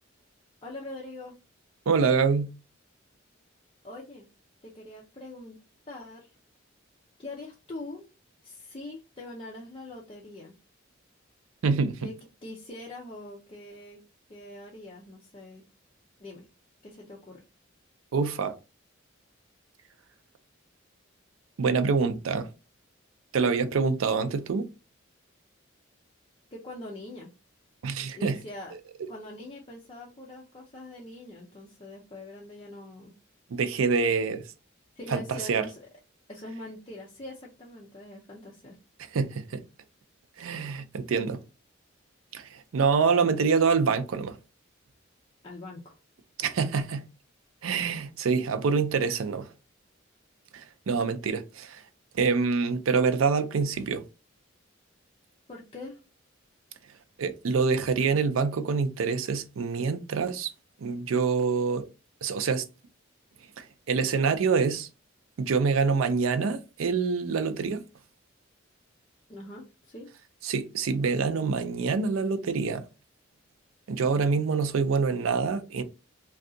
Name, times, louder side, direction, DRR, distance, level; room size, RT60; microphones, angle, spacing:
voice 1, 0.6-1.3 3.8-4.3 4.6-5.6 5.9-6.3 7.2-8.1 8.4-10.6 12.0-12.1 12.4-14.0 14.3-15.6 16.2-16.5 16.8-17.4 26.5-27.3 28.1-28.7 29.1-33.1 35.0-35.8 36.3-38.8 45.4-46.0 55.5-56.0 69.3-70.1, left 1 dB, 25° left, 0.6 m, -43 dB
voice 2, 1.9-2.5 11.6-12.1 18.1-18.5 21.6-22.5 23.3-24.7 27.8-28.4 29.0-29.1 33.5-34.4 35.1-35.7 39.1-39.6 40.4-41.4 42.3-44.4 46.4-47.1 47.6-49.5 50.5-51.8 52.1-54.0 57.2-60.5 60.8-61.9 62.2-62.7 63.6-64.9 65.4-67.8 70.4-72.8 73.9-75.8, right 5 dB, 90° right, 0.4 m, -26 dB
2.6 x 2.3 x 3.7 m
head